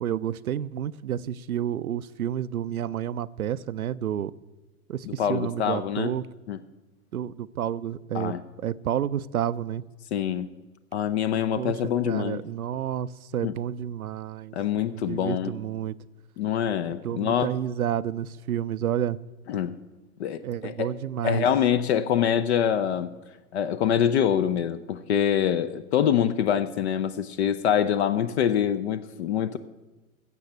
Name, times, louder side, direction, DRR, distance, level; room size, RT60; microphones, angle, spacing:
voice 1, 0.0-4.3 4.9-6.2 7.1-8.3 8.6-9.8 11.6-11.7 12.1-15.9 17.0-19.2 20.4-21.4, right 10 dB, 80° right, 0.6 m, -30 dB
voice 2, 5.1-6.1 6.5-6.6 8.1-8.4 10.1-10.5 10.9-12.4 13.4-13.5 14.5-15.5 16.4-17.5 19.5-19.8 20.2-20.9 21.2-23.1 23.5-29.6, left 9 dB, 50° left, 0.7 m, -25 dB
15.0 x 7.6 x 6.7 m
figure-of-eight pair, 105°, 43 cm